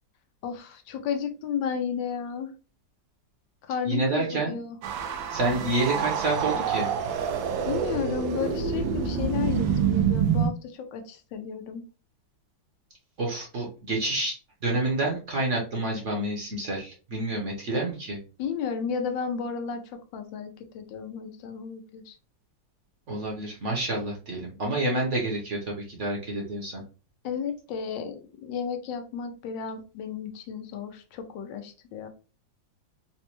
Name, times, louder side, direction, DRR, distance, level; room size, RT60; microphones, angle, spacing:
voice 1, 0.4-2.5 3.7-4.8 7.6-11.8 18.4-22.2 27.2-32.1, left 6 dB, 85° left, 6 dB, 1.4 m, -33 dB
voice 2, 3.9-4.6 5.3-6.9 13.2-18.2 23.1-26.8, right 2 dB, 50° right, -1 dB, 1.0 m, -28 dB
sound 1, 4.8-10.5, right 7 dB, 85° right, 1.3 m, -27 dB
4.1 x 2.2 x 2.9 m, 0.35 s
omnidirectional pair, 2.0 m